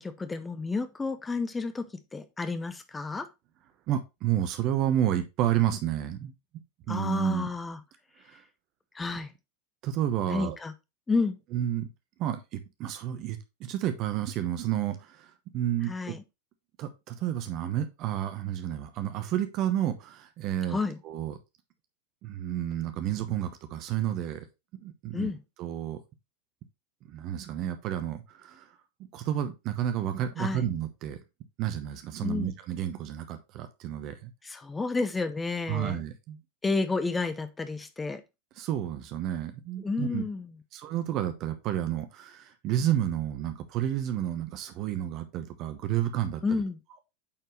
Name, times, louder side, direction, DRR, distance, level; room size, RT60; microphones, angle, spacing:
voice 1, 0.0-1.9 2.1-3.3 6.9-7.8 8.9-9.3 10.3-10.7 11.1-11.4 15.9-16.2 20.7-21.0 25.1-25.4 30.4-30.6 32.2-32.5 34.4-36.0 36.6-38.2 39.8-40.5 46.4-46.8, left 3 dB, 15° left, 0.8 m, -30 dB
voice 2, 3.9-6.3 6.9-7.5 8.3-8.4 9.8-10.6 11.5-11.9 12.2-16.1 16.8-20.8 21.0-21.3 22.2-24.4 24.8-25.3 25.6-26.0 27.1-28.6 29.1-31.2 31.6-34.3 35.7-36.4 38.6-40.2 40.7-46.4, right 11 dB, 40° right, 1.0 m, -30 dB
8.6 x 4.6 x 3.1 m
figure-of-eight pair, 85°, 0 cm